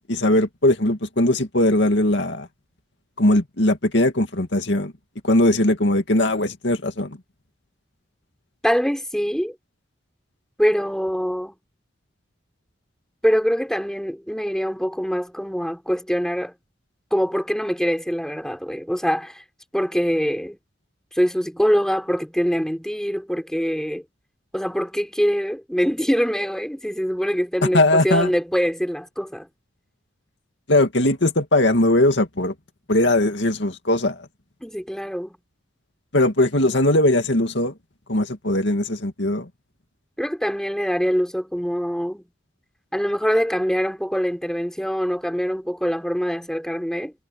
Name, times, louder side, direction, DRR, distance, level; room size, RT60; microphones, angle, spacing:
voice 1, 0.0-2.5 3.2-4.9 5.2-7.2 27.7-28.3 30.7-32.5 32.9-34.3 36.1-37.7 38.1-39.5, left 1 dB, 70° left, 2.3 m, -20 dB
voice 2, 8.6-9.5 10.6-11.5 13.2-16.5 17.1-19.4 19.7-20.6 21.1-24.0 24.5-29.5 34.6-35.4 40.2-42.2 42.9-47.1, equal, 5° left, 4.7 m, -24 dB
head